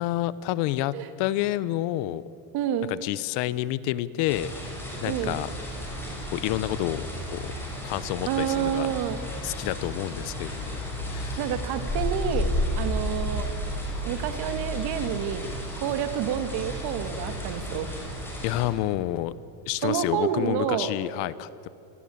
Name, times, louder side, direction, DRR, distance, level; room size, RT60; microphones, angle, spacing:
voice 1, 0.0-2.2 2.9-4.5 5.0-5.5 6.3-7.5 7.8-8.9 9.4-10.8 11.1-11.4 18.4-19.3 19.7-21.7, left 15 dB, 60° left, 18 dB, 1.0 m, -29 dB
voice 2, 2.5-2.9 5.1-5.4 8.2-9.2 11.4-13.5 14.0-15.5 15.8-17.9 19.8-20.9, right 9 dB, 50° right, 10 dB, 2.2 m, -29 dB
sound 1, 4.3-18.7, left 1 dB, 5° left, 6.4 m, -32 dB
27.0 x 20.0 x 8.7 m, 2.7 s
cardioid pair, 145°, 48 cm